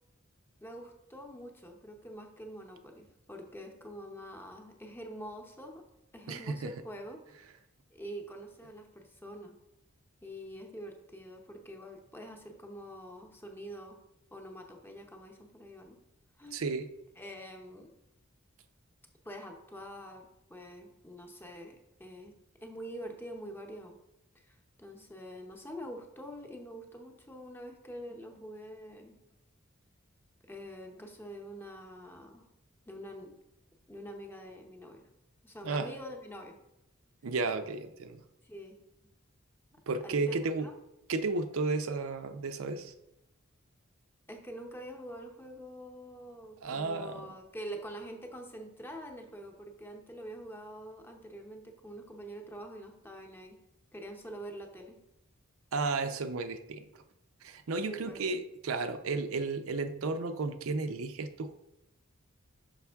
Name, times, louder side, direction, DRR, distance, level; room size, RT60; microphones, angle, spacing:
voice 1, 0.6-5.8 6.1-7.2 7.9-9.5 10.2-14.0 14.3-16.0 16.4-16.7 17.2-17.9 19.2-24.0 24.3-29.2 30.4-32.5 32.9-33.4 33.9-35.1 35.4-36.6 38.4-38.8 40.0-40.7 44.3-53.6 53.9-55.0 57.9-58.2, equal, 10° left, 3 dB, 0.7 m, -45 dB
voice 2, 6.3-6.7 16.5-16.9 35.6-35.9 37.2-38.2 39.9-40.7 41.1-42.9 46.6-47.3 55.7-57.0 57.4-61.5, right 3 dB, 90° right, 8 dB, 0.5 m, -33 dB
5.8 x 5.2 x 3.4 m, 0.88 s
head